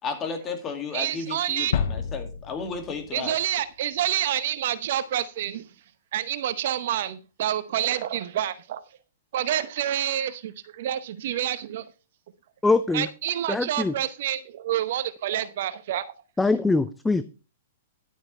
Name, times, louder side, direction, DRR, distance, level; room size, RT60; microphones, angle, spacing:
voice 1, 0.0-3.4, left 5 dB, 25° left, 2.4 m, -33 dB
voice 2, 0.9-1.7 3.1-5.6 6.1-8.8 9.3-11.8 12.9-16.1, right 11 dB, 60° right, 0.8 m, -28 dB
sound 1, 1.7-3.8, left 7 dB, 65° left, 0.7 m, -30 dB
voice 3, 12.6-13.1 13.5-13.9 16.4-17.2, left 3 dB, 10° left, 0.5 m, -22 dB
11.0 x 8.9 x 3.3 m
hypercardioid pair, 120°, 0 cm